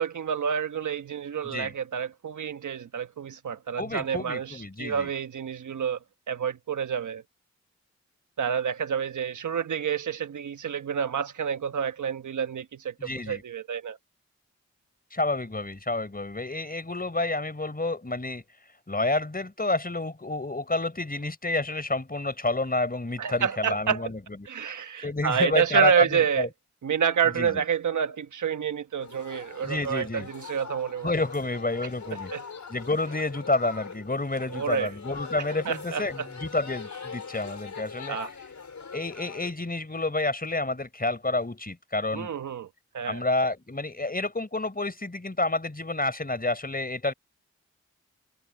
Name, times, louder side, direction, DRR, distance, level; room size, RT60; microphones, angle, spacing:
voice 1, 0.0-6.0 6.3-7.2 8.4-12.9 13.3-14.0 23.2-24.1 24.5-26.5 26.8-31.1 32.1-32.4 34.5-34.9 35.6-36.3 38.1-38.3 42.1-42.7 42.9-43.2, right 7 dB, 85° right, 1.2 m, -28 dB
voice 2, 3.8-5.1 13.0-13.4 15.1-18.4 18.9-24.2 25.0-26.5 27.4-27.6 29.6-30.3 31.0-32.3 32.7-38.2 38.9-42.3 43.1-47.1, left 2 dB, 30° left, 4.4 m, -29 dB
sound 1, 29.0-39.5, left 5 dB, 70° left, 4.4 m, -42 dB
cardioid pair, 45°, 29 cm